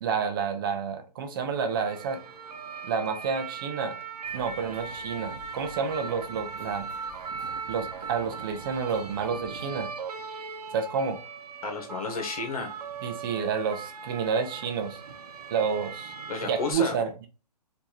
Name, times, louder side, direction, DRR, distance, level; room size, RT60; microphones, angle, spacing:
voice 1, 0.0-2.2 2.8-4.0 4.3-6.9 7.7-9.9 10.7-11.2 13.0-15.0 15.5-16.1 16.4-17.3, right 6 dB, 35° right, 7 dB, 0.6 m, -29 dB
sound 1, 1.7-16.7, right 5 dB, 65° right, 0.9 m, -39 dB
sound 2, 4.2-9.7, equal, ahead, 2.3 m, -51 dB
voice 2, 11.6-12.7 16.3-17.0, left 4 dB, 60° left, 4 dB, 1.5 m, -31 dB
4.5 x 2.8 x 2.9 m, 0.35 s
hypercardioid pair, 135°, 21 cm